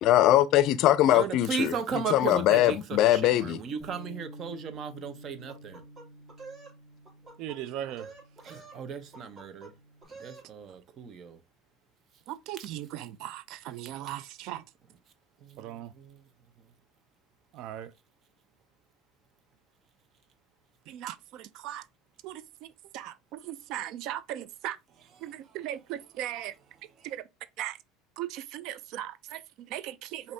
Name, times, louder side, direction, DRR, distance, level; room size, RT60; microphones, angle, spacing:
voice 1, 0.0-1.7 2.1-3.6, left 13 dB, 60° left, 0.4 m, -21 dB
voice 2, 1.0-5.8 8.4-9.7 10.2-11.4 15.4-16.2, right 6 dB, 45° right, 0.9 m, -36 dB
Bass guitar, 3.8-10.1, right 1 dB, 20° left, 1.9 m, -50 dB
sound 1, 5.5-6.8 7.1-7.6 7.9-8.8 9.1-9.7 10.0-10.5, right 3 dB, 25° right, 2.3 m, -48 dB
voice 3, 7.4-8.1 12.3-14.6 15.6-15.9 17.5-17.9 20.9-21.8 22.2-24.8 25.2-26.5 27.0-27.2 27.6-27.8 28.2-30.3, right 12 dB, 65° right, 0.4 m, -38 dB
5.1 x 2.7 x 2.7 m
supercardioid pair, 105°, 0 cm